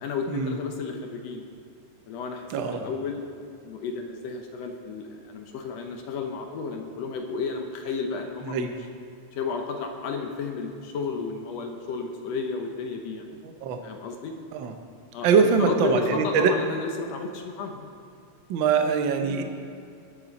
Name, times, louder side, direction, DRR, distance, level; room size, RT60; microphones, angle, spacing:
voice 1, 0.0-1.4 2.1-3.2 3.6-8.8 9.3-13.4 13.8-14.3 15.1-17.9 19.2-19.4, left 4 dB, 70° left, 4 dB, 1.9 m, -33 dB
voice 2, 2.5-2.9 8.5-8.7 13.4-13.8 14.5-14.7 15.2-16.5 18.5-19.4, right 5 dB, 90° right, 6 dB, 1.0 m, -23 dB
20.5 x 7.5 x 4.1 m, 2.4 s
omnidirectional pair, 3.4 m